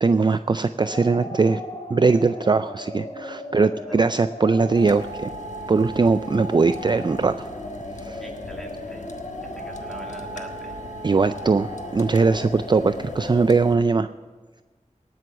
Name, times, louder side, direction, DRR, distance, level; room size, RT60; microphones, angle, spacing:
voice 1, 0.0-1.6 1.9-5.3 5.7-7.5 8.0-8.2 11.0-14.1, right 4 dB, 35° right, 11 dB, 0.3 m, -20 dB
sound 1, 0.8-13.6, equal, 35° left, 3.6 m, -37 dB
voice 2, 3.6-4.0 8.2-9.1 9.5-10.8, equal, 5° left, 0 dB, 2.6 m, -42 dB
sound 2, 4.7-13.8, left 2 dB, 70° left, 1.2 m, -40 dB
18.5 x 6.2 x 6.9 m, 1.3 s
wide cardioid pair, 70°, 13 cm